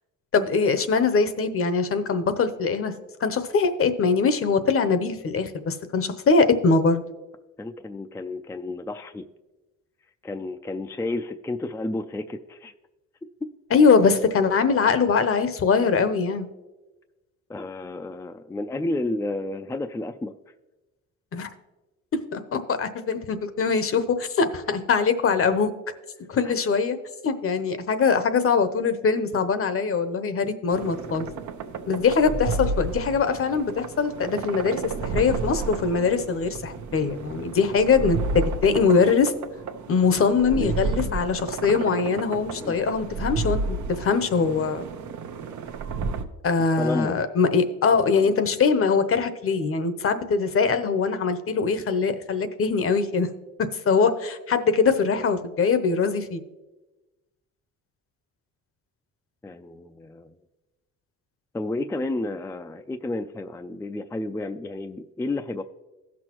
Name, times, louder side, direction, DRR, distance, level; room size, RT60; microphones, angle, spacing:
voice 1, 0.3-2.9 3.2-7.0 13.7-16.5 21.3-21.5 22.3-25.7 26.3-27.0 27.2-31.3 31.9-39.3 39.9-44.8 46.4-53.3 53.6-56.4, left 5 dB, 45° left, 11 dB, 0.8 m, -22 dB
voice 2, 7.6-9.2 10.2-12.7 17.5-20.3 26.4-26.5 40.5-41.1 42.6-42.8 46.8-47.2 48.1-48.3 59.4-60.3 61.5-65.6, left 2 dB, 10° left, 7 dB, 0.3 m, -31 dB
sound 1, 30.7-46.2, right 4 dB, 75° right, 0.8 m, -31 dB
16.0 x 6.2 x 3.0 m, 1.1 s
cardioid pair, 90°, 30 cm